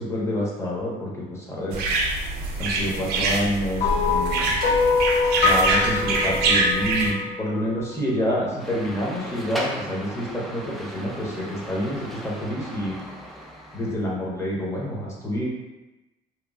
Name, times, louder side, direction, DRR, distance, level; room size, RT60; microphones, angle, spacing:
voice 1, 0.0-1.8 2.6-4.5 5.4-13.0 13.7-15.5, equal, 15° left, -5 dB, 0.8 m, -28 dB
sound 1, 1.7-7.1, right 2 dB, 75° right, 0.5 m, -24 dB
sound 2, 3.8-8.2, left 4 dB, 55° left, 0.7 m, -24 dB
sound 3, 8.6-14.0, equal, ahead, 0.3 m, -36 dB
2.9 x 2.2 x 2.4 m, 1.0 s
cardioid pair, 110°, 17 cm